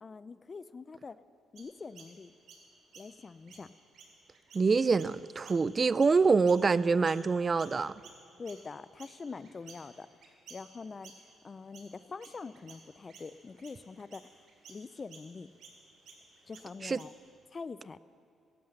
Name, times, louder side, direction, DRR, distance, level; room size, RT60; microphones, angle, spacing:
voice 1, 0.0-1.2 1.5-2.3 3.0-3.7 8.4-10.1 10.5-11.1 11.4-14.3 14.7-15.5 16.5-17.1 17.5-18.0, left 4 dB, 35° left, 16 dB, 0.4 m, -44 dB
Chirp tweet, 1.6-7.3 7.6-17.3, right 4 dB, 70° right, 2.5 m, -55 dB
voice 2, 4.5-7.9 16.8-17.0, right 4 dB, 35° right, 18 dB, 0.3 m, -25 dB
16.0 x 11.5 x 6.5 m, 2.6 s
cardioid pair, 90°, 0 cm